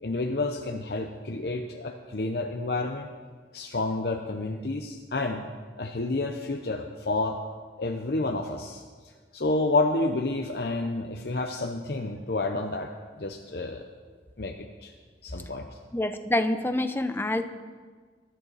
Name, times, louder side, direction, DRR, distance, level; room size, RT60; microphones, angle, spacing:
voice 1, 0.0-3.1 3.5-5.4 5.8-7.4 7.8-8.8 9.3-12.9 13.2-13.8 14.4-14.9 15.2-15.7, left 2 dB, 65° left, 3 dB, 0.8 m, -29 dB
voice 2, 15.9-17.4, left 1 dB, 15° left, 8 dB, 0.7 m, -26 dB
22.5 x 11.5 x 4.2 m, 1.5 s
head